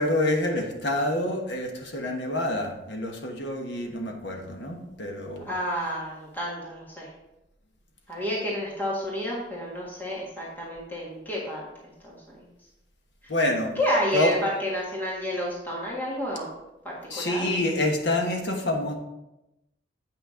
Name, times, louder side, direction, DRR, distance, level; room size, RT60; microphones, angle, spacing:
voice 1, 0.0-5.4 13.3-13.7 14.1-14.4 17.1-18.9, left 1 dB, 75° left, 3 dB, 1.2 m, -27 dB
voice 2, 5.5-7.1 8.1-11.6 12.0-12.2 13.7-16.5 16.8-17.4, equal, 10° left, -5 dB, 1.6 m, -30 dB
8.4 x 5.8 x 3.8 m, 0.93 s
head